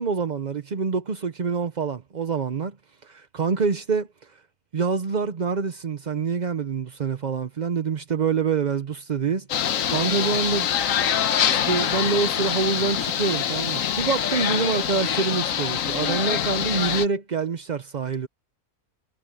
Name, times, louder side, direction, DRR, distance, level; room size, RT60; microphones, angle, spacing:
voice 1, 0.0-2.8 3.0-4.4 4.7-10.7 11.5-18.3, right 5 dB, 45° right, 0.6 m, -26 dB
sound 1, 9.5-17.1, left 9 dB, 60° left, 1.2 m, -25 dB
omnidirectional pair, 1.7 m